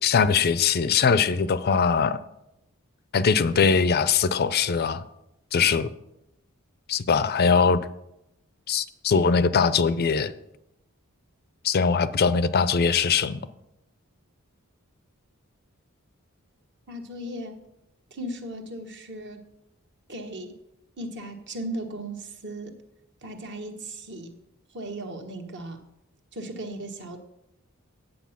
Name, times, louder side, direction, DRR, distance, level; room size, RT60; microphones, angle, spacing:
voice 1, 0.0-2.2 3.1-5.0 5.5-5.9 6.9-7.8 8.7-10.3 11.6-13.4, left 5 dB, 45° left, 15 dB, 0.5 m, -21 dB
voice 2, 16.9-17.6 18.1-19.5 20.1-20.5 21.0-22.8 23.2-24.4 24.7-25.8 26.3-27.2, right 1 dB, 55° right, 5 dB, 1.3 m, -36 dB
9.3 x 7.8 x 5.8 m, 0.85 s
head